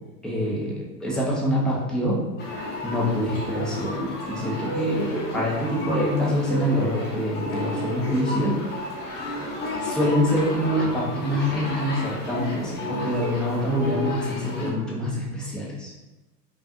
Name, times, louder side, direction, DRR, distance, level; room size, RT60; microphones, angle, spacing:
voice 1, 0.2-2.2 2.8-8.7 9.8-15.9, equal, ahead, -6 dB, 0.4 m, -25 dB
sound 1, 2.4-14.7, left 1 dB, 20° left, 0.9 m, -31 dB
5.2 x 2.3 x 2.8 m, 1.1 s
figure-of-eight pair, 95°, 49 cm